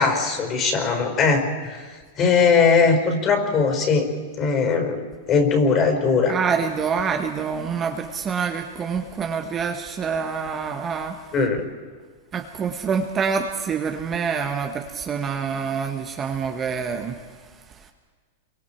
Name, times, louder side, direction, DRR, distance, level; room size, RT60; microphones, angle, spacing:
voice 1, 0.0-1.8 2.2-4.1 4.4-5.0 5.3-6.4 11.3-11.6, left 5 dB, 30° left, 4 dB, 4.7 m, -20 dB
voice 2, 6.3-11.1 12.3-17.2, right 6 dB, 25° right, 4 dB, 1.4 m, -26 dB
27.5 x 24.0 x 4.6 m, 1.5 s
hypercardioid pair, 135°, 0 cm